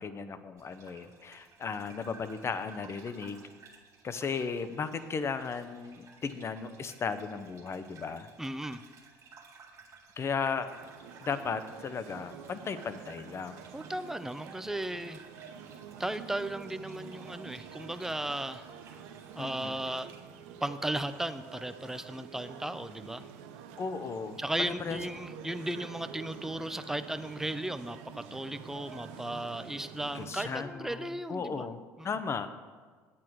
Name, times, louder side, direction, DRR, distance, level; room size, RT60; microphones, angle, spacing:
voice 1, 0.0-3.4 4.0-8.3 10.2-10.7 11.2-13.6 19.4-19.8 23.8-24.4 24.7-25.0 30.1-32.5, left 5 dB, 35° left, 11 dB, 0.7 m, -36 dB
Gurgling / Bathtub (filling or washing), 0.6-20.2, right 5 dB, 45° right, 1.9 m, -56 dB
voice 2, 8.4-8.8 13.7-15.2 16.0-18.6 19.3-20.1 20.6-23.2 24.4-31.7 32.0-32.1, right 1 dB, 5° right, 11 dB, 0.5 m, -36 dB
sound 1, 10.7-30.6, right 7 dB, 85° right, 0.7 m, -48 dB
8.6 x 8.5 x 4.6 m, 1.5 s
supercardioid pair, 80°, 7 cm